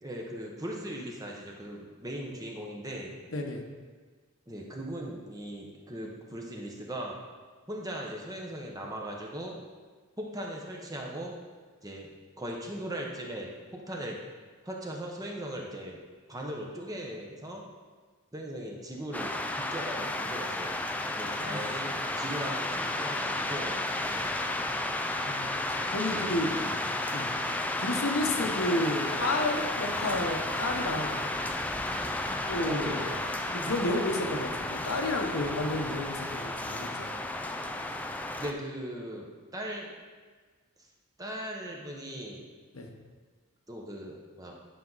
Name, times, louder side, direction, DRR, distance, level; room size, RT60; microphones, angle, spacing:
voice 1, 0.0-3.1 4.5-7.2 7.7-9.5 10.2-11.3 11.8-12.1 12.4-14.2 14.6-16.0 16.3-17.6 18.3-20.7 21.2-21.9 22.2-23.7 24.1-24.3 26.1-27.2 28.4-28.5 32.7-33.2 38.4-39.3 39.5-39.9 41.2-42.4 43.7-44.6, right 1 dB, 15° right, -1 dB, 1.0 m, -39 dB
sound 1, 19.1-38.5, left 1 dB, 5° left, 0.4 m, -32 dB
voice 2, 25.2-26.5 27.1-31.3 32.5-33.1 33.5-37.1 42.7-42.9, left 2 dB, 70° left, 2 dB, 1.1 m, -31 dB
10.5 x 5.9 x 4.0 m, 1.4 s
head